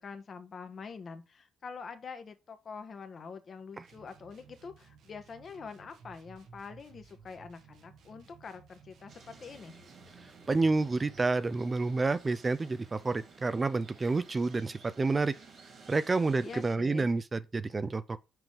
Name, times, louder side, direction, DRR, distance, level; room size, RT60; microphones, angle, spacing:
voice 1, 0.0-9.8 16.4-17.1, left 5 dB, 45° left, 1.2 m, -45 dB
sound 1, 3.8-11.3, right 5 dB, 80° right, 1.4 m, -57 dB
sound 2, 9.1-16.8, right 4 dB, 55° right, 2.3 m, -55 dB
voice 2, 10.5-15.3 15.9-18.2, right 3 dB, 25° right, 0.4 m, -29 dB
5.9 x 5.2 x 3.5 m
cardioid pair, 90°, 0 cm